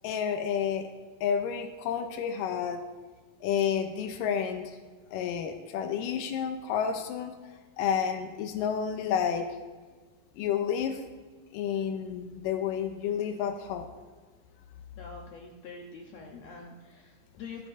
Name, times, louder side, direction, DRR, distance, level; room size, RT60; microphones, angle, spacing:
voice 1, 0.0-0.9 1.2-2.8 3.4-4.8 5.1-7.3 7.8-9.5 10.4-11.0 11.5-13.9, left 8 dB, 90° left, 6 dB, 2.4 m, -30 dB
voice 2, 15.0-17.7, left 4 dB, 65° left, 1 dB, 1.8 m, -45 dB
18.0 x 10.5 x 2.6 m, 1.4 s
omnidirectional pair, 3.9 m